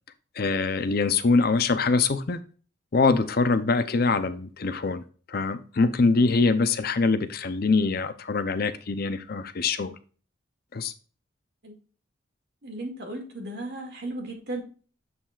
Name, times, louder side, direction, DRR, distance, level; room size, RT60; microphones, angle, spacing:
voice 1, 0.4-2.4 2.9-5.0 5.3-9.9 10.7-10.9, left 4 dB, 50° left, 11 dB, 0.6 m, -24 dB
voice 2, 12.6-14.6, right 2 dB, 55° right, 1 dB, 2.2 m, -35 dB
7.5 x 6.8 x 2.4 m, 0.39 s
head